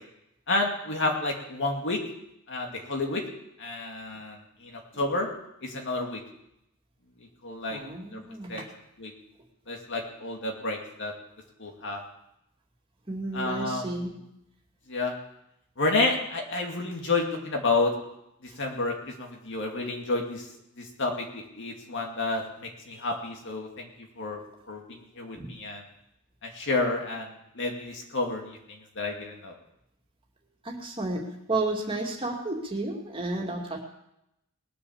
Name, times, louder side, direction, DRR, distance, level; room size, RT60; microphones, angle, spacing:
voice 1, 0.5-2.0 2.5-3.2 3.6-5.3 5.6-6.2 7.4-7.8 8.1-8.2 8.5-8.7 9.0-9.1 9.7-11.1 11.6-12.0 13.3-13.9 14.9-15.1 15.8-17.9 18.4-20.5 20.8-23.9 24.2-24.4 24.7-25.8 26.4-29.6, left 3 dB, 60° left, 1 dB, 2.3 m, -30 dB
voice 2, 7.7-8.7 13.1-14.1 25.4-25.5 30.6-33.8, right 2 dB, 25° right, 0 dB, 2.4 m, -32 dB
20.0 x 7.0 x 7.2 m, 0.82 s
head